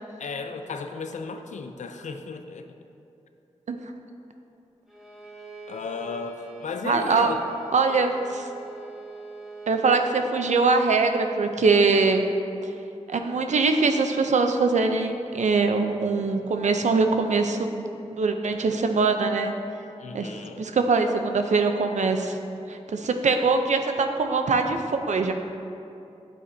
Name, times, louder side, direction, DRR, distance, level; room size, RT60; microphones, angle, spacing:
voice 1, 0.2-2.7 5.7-7.4 20.0-20.6, left 4 dB, 85° left, 7 dB, 0.5 m, -34 dB
Bowed string instrument, 4.9-9.9, right 2 dB, ahead, 1.8 m, -43 dB
voice 2, 6.8-7.3 7.7-8.5 9.7-12.2 13.1-19.5 20.1-20.3 20.6-22.4 22.7-25.3, right 4 dB, 80° right, 6 dB, 0.6 m, -23 dB
9.7 x 8.3 x 2.7 m, 2.7 s
cardioid pair, 45°, 12 cm